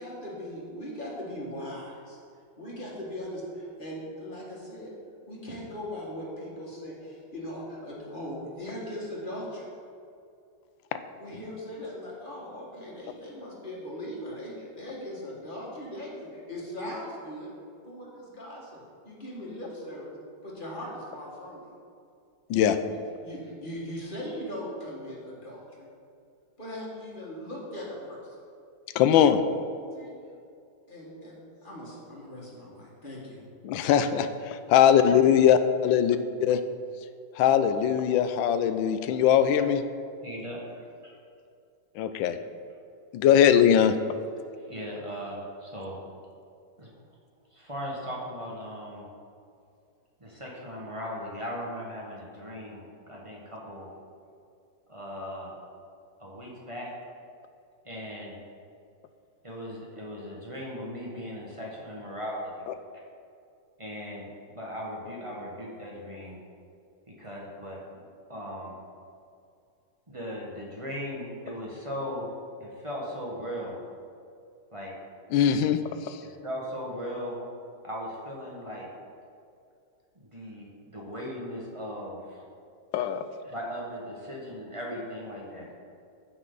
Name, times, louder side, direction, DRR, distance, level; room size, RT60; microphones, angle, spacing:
voice 1, 0.0-2.2 2.6-4.9 5.3-9.7 11.2-17.5 17.8-20.2 20.4-21.6 22.9-25.9 26.6-28.4 29.9-30.1 30.9-31.3 31.6-33.4, equal, 25° left, -5 dB, 2.0 m, -39 dB
voice 2, 28.9-29.4 33.6-34.2 34.7-36.6 37.4-39.8 42.0-42.4 43.1-44.0 75.3-75.8 76.1-76.2 82.9-83.2, left 9 dB, 90° left, 10 dB, 1.4 m, -21 dB
voice 3, 40.2-40.6 44.6-46.0 46.8-46.9 47.5-49.1 50.2-53.9 54.9-55.6 56.2-56.9 57.8-58.4 59.4-62.7 63.8-66.4 67.1-67.8 68.3-68.7 70.1-72.3 72.6-73.7 74.7-74.9 76.2-77.4 77.8-78.9 80.1-82.4 83.4-85.7, equal, 20° right, -4 dB, 1.4 m, -38 dB
14.0 x 5.9 x 4.0 m, 2.5 s
omnidirectional pair, 2.0 m